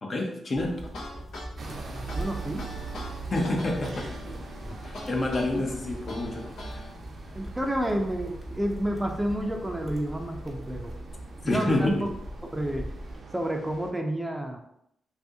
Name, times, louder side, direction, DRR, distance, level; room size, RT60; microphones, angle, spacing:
voice 1, 0.0-0.8 3.3-4.1 4.8-6.8 11.4-12.1, left 2 dB, 50° left, 0 dB, 0.8 m, -28 dB
sound 1, 0.5-13.2, equal, 20° left, 1.0 m, -41 dB
sound 2, 0.8-6.9, left 1 dB, 80° left, 0.7 m, -42 dB
Bus Station, 1.6-13.9, right 5 dB, 60° right, 0.6 m, -44 dB
voice 2, 2.1-2.7 4.6-4.8 5.5-5.8 7.3-10.9 11.4-12.1 12.5-12.9 13.3-14.6, right 1 dB, 15° right, 3 dB, 0.5 m, -30 dB
2.7 x 2.6 x 3.6 m, 0.74 s
supercardioid pair, 45°, 0 cm